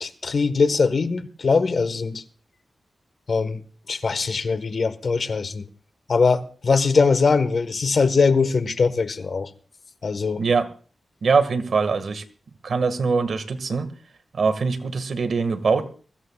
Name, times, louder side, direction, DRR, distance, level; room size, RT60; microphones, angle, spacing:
voice 1, 0.0-2.2 3.3-3.6 3.9-5.6 6.1-9.5 10.0-10.4, left 4 dB, 60° left, 1.3 m, -21 dB
voice 2, 10.4-10.7 11.2-12.2 12.6-13.9 14.3-15.9, right 4 dB, 70° right, 1.7 m, -22 dB
22.5 x 15.5 x 2.4 m
cardioid pair, 80°, 0 cm